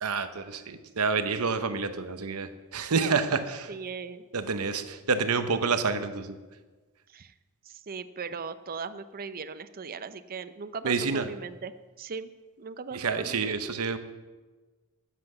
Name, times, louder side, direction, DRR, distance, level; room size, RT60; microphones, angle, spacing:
voice 1, 0.0-3.7 4.3-6.4 10.8-11.3 12.9-14.0, right 5 dB, 80° right, 10 dB, 0.8 m, -28 dB
voice 2, 3.7-4.3 7.1-7.3 7.7-11.7 12.0-12.3 12.6-13.6, right 5 dB, 40° right, 13 dB, 0.5 m, -38 dB
9.8 x 7.6 x 7.7 m, 1.3 s
head